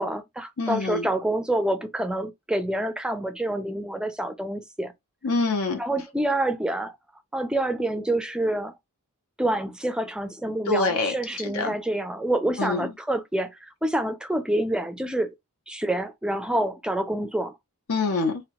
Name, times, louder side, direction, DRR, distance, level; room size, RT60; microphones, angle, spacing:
voice 1, 0.0-4.9 5.8-6.9 7.3-8.7 9.4-15.3 15.7-17.5, right 1 dB, 5° right, 0.3 m, -27 dB
voice 2, 0.6-1.1 5.2-5.8 10.7-11.1 11.5-11.7 12.6-12.9 17.9-18.4, left 3 dB, 75° left, 0.6 m, -25 dB
2.8 x 2.1 x 2.8 m
head